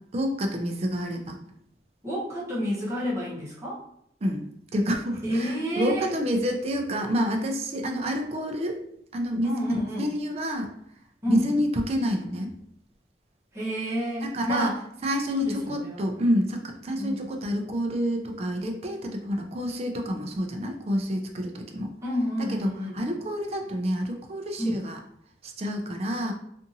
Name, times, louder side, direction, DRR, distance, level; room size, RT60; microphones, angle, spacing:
voice 1, 0.1-1.4 4.2-4.4 4.7-8.8 9.1-10.8 11.3-12.5 14.2-14.7 15.0-21.9 22.5-22.7 22.9-25.0 25.4-26.3, equal, 35° right, 3 dB, 0.4 m, -28 dB
voice 2, 2.0-3.8 5.2-6.1 9.4-10.1 11.2-11.5 13.5-14.8 15.3-16.2 17.0-17.2 22.0-23.0 24.6-24.8, equal, 15° right, -8 dB, 0.9 m, -29 dB
2.7 x 2.5 x 2.6 m, 0.72 s
head